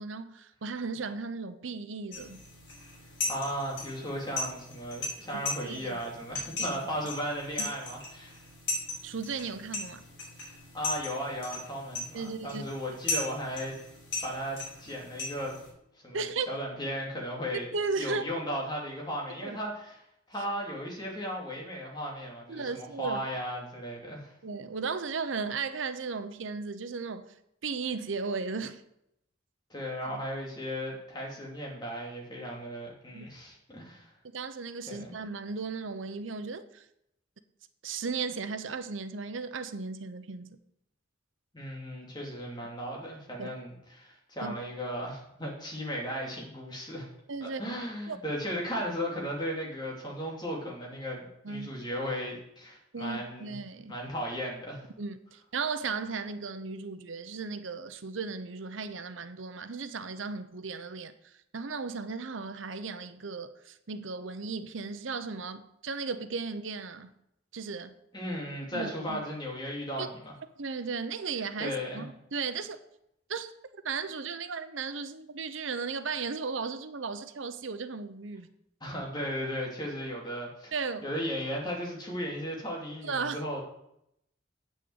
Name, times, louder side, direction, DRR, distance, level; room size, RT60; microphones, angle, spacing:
voice 1, 0.0-2.4 5.3-6.0 6.6-6.8 7.6-7.7 9.0-10.0 12.1-12.7 16.1-16.5 17.7-18.3 19.4-19.6 22.5-23.2 24.4-27.3 27.6-28.8 30.0-30.2 33.1-33.3 34.3-36.8 37.8-40.6 43.4-43.5 44.4-44.6 47.3-47.8 48.1-48.2 51.4-51.7 52.9-53.9 55.0-67.1 67.5-67.9 68.7-69.2 70.0-70.1 70.6-72.8 73.3-73.5 73.8-78.5 80.7-81.1 83.0-83.4, right 4 dB, 85° right, 0.8 m, -36 dB
sound 1, 2.1-15.7, left 2 dB, 70° left, 4.8 m, -38 dB
voice 2, 3.3-8.4 10.5-13.8 14.2-15.6 16.0-17.7 18.0-20.0 20.3-24.3 29.7-34.1 34.9-35.1 41.5-47.1 47.4-53.5 53.9-54.9 68.1-70.3 71.6-72.0 78.8-80.7 81.0-83.6, equal, 20° left, 2.7 m, -36 dB
8.4 x 6.5 x 8.0 m
head